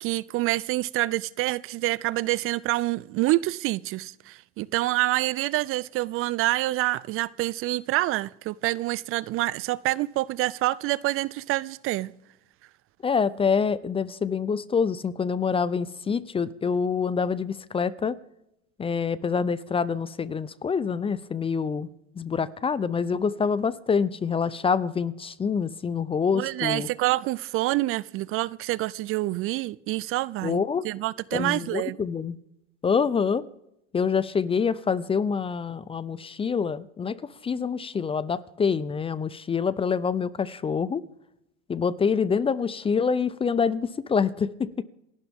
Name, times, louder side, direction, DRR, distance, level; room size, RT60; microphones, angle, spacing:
voice 1, 0.0-12.1 26.3-32.0, right 17 dB, 40° right, 0.4 m, -27 dB
voice 2, 13.0-18.2 18.8-21.9 22.2-26.9 30.4-30.8 31.3-32.4 32.8-33.5 33.9-41.0 41.7-44.8, left 6 dB, 15° left, 0.5 m, -26 dB
28.0 x 11.5 x 3.6 m
supercardioid pair, 115°, 33 cm